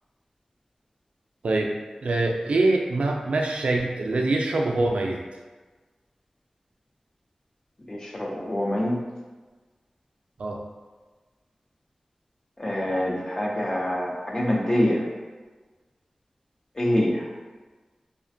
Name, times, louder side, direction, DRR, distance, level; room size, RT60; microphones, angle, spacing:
voice 1, 2.0-5.2 10.4-10.6, right 2 dB, 80° right, 1 dB, 0.3 m, -24 dB
voice 2, 7.9-9.0 12.6-15.0 16.8-17.2, left 1 dB, 35° left, -3 dB, 0.4 m, -25 dB
2.4 x 2.1 x 2.5 m, 1.3 s
wide cardioid pair, 85°, 2 cm